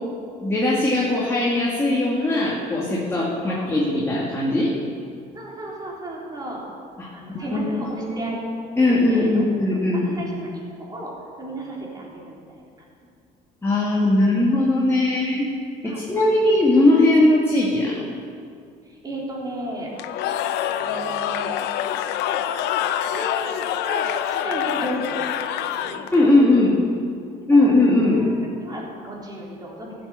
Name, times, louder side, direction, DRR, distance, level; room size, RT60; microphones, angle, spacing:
voice 1, 0.4-4.7 7.0-8.4 8.8-10.3 13.6-15.5 15.8-18.0 26.1-26.7 27.5-28.2, left 2 dB, 15° left, -6 dB, 2.2 m, -19 dB
voice 2, 3.2-3.8 5.3-6.7 7.1-8.4 8.7-10.5 10.8-11.1 11.4-12.9 14.0-14.1 15.8-16.3 16.5-16.6 18.8-19.9 20.7-21.5 23.0-26.4 27.5-27.7 28.2-28.3 28.6-29.9, right 1 dB, 25° right, -4 dB, 3.7 m, -34 dB
Cheering / Crowd, 20.0-26.3, left 10 dB, 85° left, 0.6 m, -26 dB
14.5 x 7.9 x 7.0 m, 2.3 s
cardioid pair, 110°, 17 cm